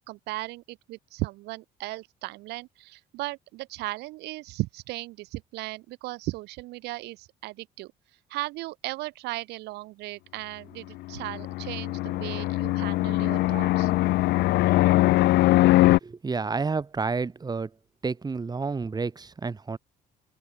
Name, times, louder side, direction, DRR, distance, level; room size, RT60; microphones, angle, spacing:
voice 1, 0.1-7.9 8.3-13.9, right 20 dB, 85° right, 0.7 m, -36 dB
Fixed-wing aircraft airplane, 11.1-16.0, left 18 dB, 80° left, 0.8 m, -22 dB
voice 2, 16.0-17.7 18.0-19.8, right 4 dB, 25° right, 3.2 m, -30 dB
open air
cardioid pair, 110°, 17 cm